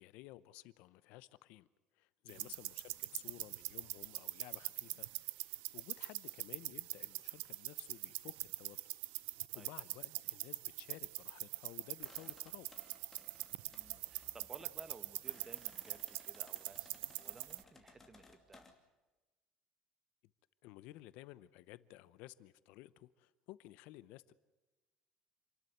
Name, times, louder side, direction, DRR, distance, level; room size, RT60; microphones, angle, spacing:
voice 1, 0.0-1.7 1.9-5.1 5.4-8.8 9.5-12.7 20.6-24.3, left 17 dB, 75° left, 17 dB, 0.7 m, -55 dB
sound 1, 2.3-17.6, right 21 dB, 85° right, 0.6 m, -44 dB
sound 2, 12.0-18.7, left 4 dB, 15° left, 2.6 m, -63 dB
voice 2, 13.7-18.7, right 3 dB, 20° right, 12 dB, 1.2 m, -57 dB
27.5 x 12.5 x 9.4 m, 1.2 s
cardioid pair, 150°, 2 cm